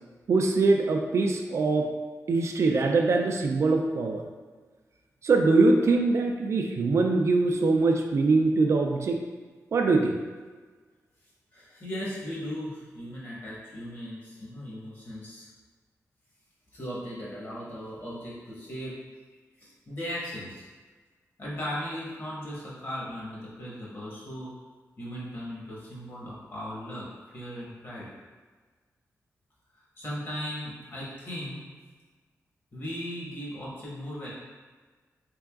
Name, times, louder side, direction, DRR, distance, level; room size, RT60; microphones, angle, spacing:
voice 1, 0.3-1.9 2.3-4.2 5.2-9.2 9.7-10.2, right 3 dB, 55° right, 2 dB, 0.3 m, -23 dB
voice 2, 11.5-15.5 16.7-19.0 19.6-20.6 21.4-24.5 25.0-28.1 30.0-31.7 32.7-34.3, equal, 40° left, -7 dB, 1.2 m, -37 dB
3.8 x 3.4 x 2.4 m, 1.4 s
wide cardioid pair, 130°, 6 cm